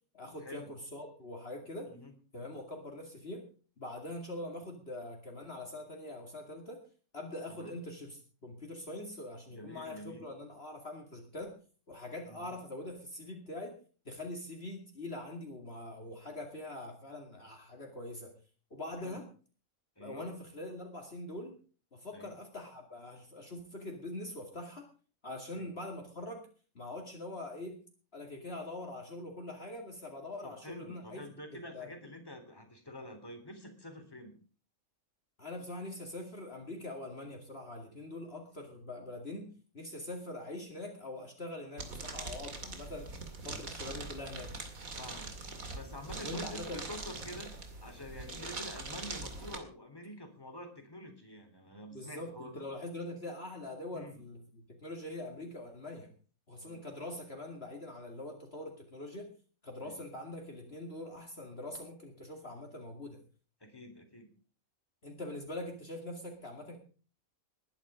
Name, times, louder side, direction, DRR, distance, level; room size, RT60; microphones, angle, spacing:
voice 1, 0.1-1.9 2.3-3.4 3.8-6.8 7.1-11.5 11.9-13.7 14.1-18.3 18.7-19.2 20.0-21.6 21.9-24.9 25.2-26.4 26.7-27.8 28.1-31.3 31.7-31.9 35.4-43.1 43.4-44.5 46.2-46.8 48.3-48.5 51.9-56.1 56.5-59.3 59.6-63.2 65.0-66.8, left 1 dB, 45° left, 2 dB, 2.6 m, -43 dB
voice 2, 9.5-10.2 12.3-12.6 19.0-19.2 20.0-20.3 22.1-22.4 25.5-25.7 30.4-34.3 45.0-45.3 45.7-47.5 47.8-52.6 53.9-54.2 56.6-56.9 59.8-60.0 63.6-64.3, left 1 dB, 15° left, 4 dB, 3.5 m, -47 dB
sound 1, 41.8-49.6, right 3 dB, 80° right, 2.9 m, -43 dB
20.5 x 11.0 x 5.0 m, 0.40 s
omnidirectional pair, 1.4 m